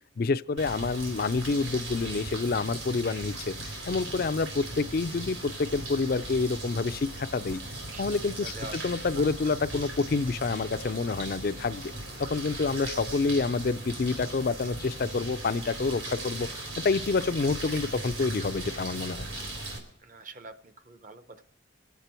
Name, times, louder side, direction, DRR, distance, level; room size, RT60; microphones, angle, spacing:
voice 1, 0.2-3.5 3.9-7.6 8.0-8.5 8.8-11.9 12.2-16.5 16.8-19.3, left 4 dB, 50° left, 12 dB, 0.4 m, -28 dB
sound 1, 0.6-19.8, right 2 dB, 85° right, 3.6 m, -38 dB
voice 2, 7.9-8.9 9.2-9.3 20.0-21.4, right 2 dB, 40° right, 10 dB, 0.8 m, -45 dB
23.5 x 8.2 x 4.4 m, 0.71 s
head